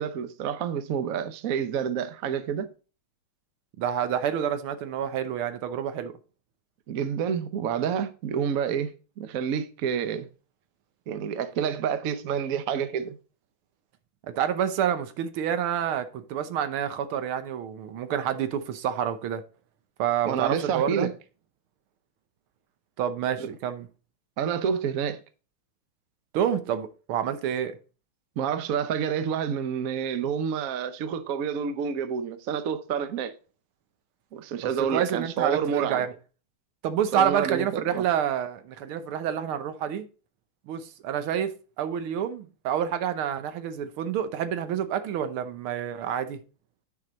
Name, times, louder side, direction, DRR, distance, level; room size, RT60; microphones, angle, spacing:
voice 1, 0.0-2.7 6.9-8.9 9.2-10.3 11.1-13.2 20.2-21.1 24.4-25.2 28.4-33.3 34.3-36.0 37.1-38.0, right 7 dB, 60° right, 0.9 m, -28 dB
voice 2, 3.8-6.1 14.3-19.4 20.0-21.1 23.0-23.9 26.3-27.7 34.9-36.1 36.8-40.1 40.7-41.5 41.8-46.4, right 9 dB, 80° right, 1.7 m, -28 dB
9.8 x 4.8 x 4.0 m
omnidirectional pair, 2.3 m